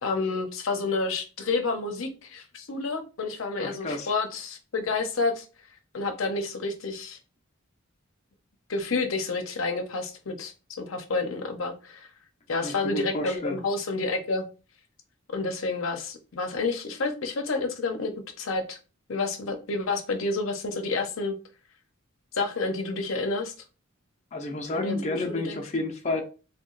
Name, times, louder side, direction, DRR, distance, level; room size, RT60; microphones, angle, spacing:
voice 1, 0.0-5.4 5.9-7.2 8.7-10.5 10.8-12.1 12.5-14.5 15.3-18.1 18.4-18.8 19.1-21.4 22.3-23.5 24.7-24.9 25.3-25.6, left 3 dB, 75° left, 6 dB, 0.6 m, -29 dB
voice 2, 3.6-4.1 12.6-13.6 24.3-26.2, left 2 dB, 35° left, 2 dB, 0.5 m, -31 dB
2.9 x 2.3 x 3.7 m, 0.33 s
head